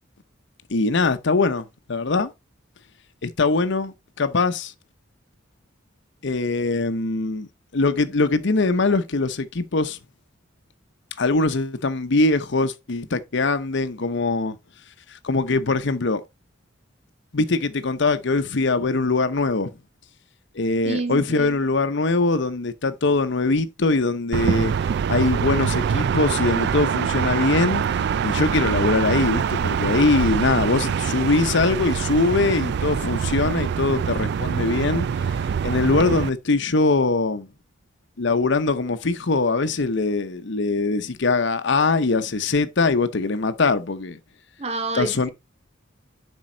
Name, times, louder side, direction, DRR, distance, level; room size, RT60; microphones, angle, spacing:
voice 1, 0.7-2.3 3.2-4.7 6.2-7.5 7.7-10.0 11.2-14.6 15.1-16.2 17.3-19.7 20.5-24.7 25.1-27.8 28.2-35.1 35.6-37.5 38.2-44.2 44.9-45.3, left 3 dB, 65° left, 0.8 m, -22 dB
voice 2, 20.8-21.6 44.6-45.3, right 3 dB, 35° right, 0.7 m, -28 dB
sound 1, 24.3-36.3, right 7 dB, 60° right, 0.3 m, -24 dB
7.5 x 5.4 x 3.8 m
head